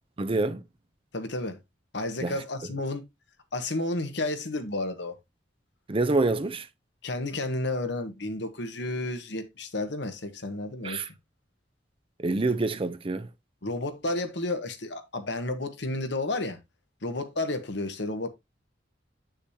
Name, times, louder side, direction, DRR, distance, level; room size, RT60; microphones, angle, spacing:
voice 1, 0.2-0.6 2.2-2.4 5.9-6.7 10.8-11.1 12.2-13.3, right 2 dB, 30° right, 0.6 m, -26 dB
voice 2, 1.1-1.6 1.9-3.0 3.5-5.1 7.0-11.1 13.6-16.6 17.0-18.3, left 2 dB, 70° left, 1.3 m, -31 dB
8.2 x 6.4 x 2.8 m
head